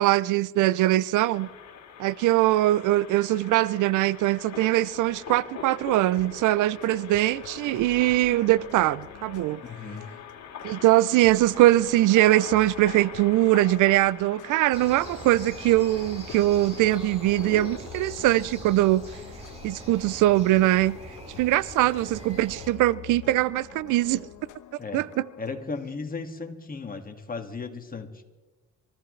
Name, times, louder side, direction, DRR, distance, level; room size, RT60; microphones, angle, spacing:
voice 1, 0.0-1.5 2.0-9.6 10.6-19.0 19.6-21.0 21.4-24.3 24.9-25.1, right 15 dB, 80° right, 0.5 m, -22 dB
sound 1, 1.3-17.8, left 7 dB, 65° left, 2.4 m, -43 dB
sound 2, 5.9-25.6, left 12 dB, 85° left, 0.9 m, -47 dB
voice 2, 9.6-10.1 24.8-25.0 25.4-28.2, left 4 dB, 30° left, 2.0 m, -36 dB
sound 3, 14.7-22.7, equal, 20° right, 6.2 m, -43 dB
29.5 x 14.0 x 3.2 m
cardioid pair, 90°, 30 cm